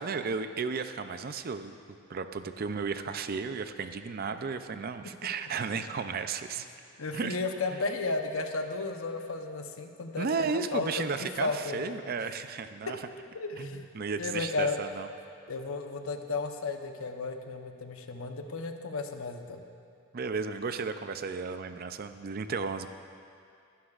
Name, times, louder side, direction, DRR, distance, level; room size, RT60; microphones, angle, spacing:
voice 1, 0.0-1.7 2.1-6.7 7.1-7.4 7.7-7.8 10.2-13.0 13.6-15.1 20.1-22.9, right 5 dB, 45° right, 9 dB, 0.4 m, -34 dB
voice 2, 7.0-11.9 13.3-13.8 14.2-14.8 15.5-19.6, left 3 dB, 75° left, 5 dB, 0.9 m, -34 dB
21.5 x 11.5 x 2.4 m, 2.4 s
head